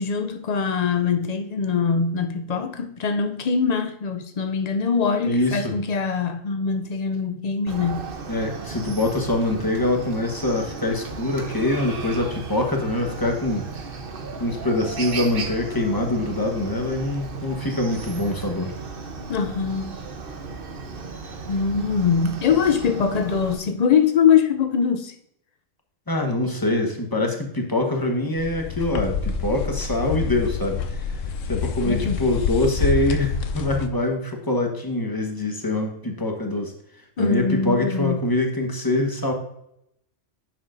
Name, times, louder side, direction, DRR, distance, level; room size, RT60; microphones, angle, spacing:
voice 1, 0.0-8.2 19.3-20.0 21.5-25.1 31.8-32.3 37.2-38.2, left 6 dB, 75° left, 0.3 m, -22 dB
voice 2, 5.2-5.7 8.3-13.7 14.4-18.7 26.1-31.1 31.5-36.7 37.2-39.3, left 1 dB, 20° left, 1.2 m, -24 dB
Chicken rooster, 7.7-23.6, right 4 dB, 50° right, 1.0 m, -35 dB
sound 1, 28.4-33.9, left 6 dB, 90° left, 1.0 m, -27 dB
9.8 x 6.7 x 2.6 m
omnidirectional pair, 1.3 m